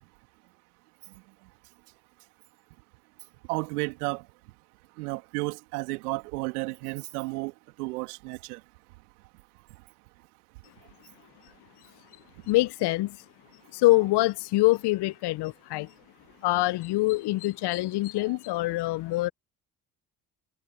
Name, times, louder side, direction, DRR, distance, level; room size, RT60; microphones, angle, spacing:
voice 1, 3.5-4.2 5.0-7.5 7.8-8.6 18.3-18.4, right 26 dB, 75° right, 2.7 m, -32 dB
voice 2, 12.5-13.2 13.7-15.9 16.4-19.3, left 19 dB, 60° left, 1.2 m, -25 dB
figure-of-eight pair, 50°, 46 cm